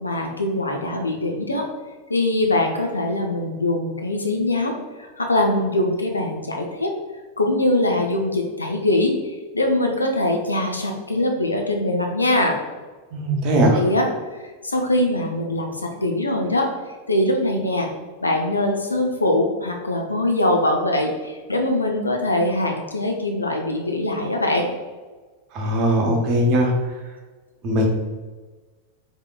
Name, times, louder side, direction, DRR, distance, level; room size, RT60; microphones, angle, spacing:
voice 1, 0.0-1.7 2.1-6.9 7.4-12.6 13.7-14.1 14.6-16.7 17.1-17.9 18.2-24.7, left 1 dB, 80° left, 2 dB, 0.4 m, -22 dB
voice 2, 13.1-13.8 25.5-26.7 27.6-27.9, right 1 dB, 40° right, 1 dB, 0.7 m, -19 dB
3.6 x 3.5 x 2.3 m, 1.3 s
figure-of-eight pair, 90°, 0 cm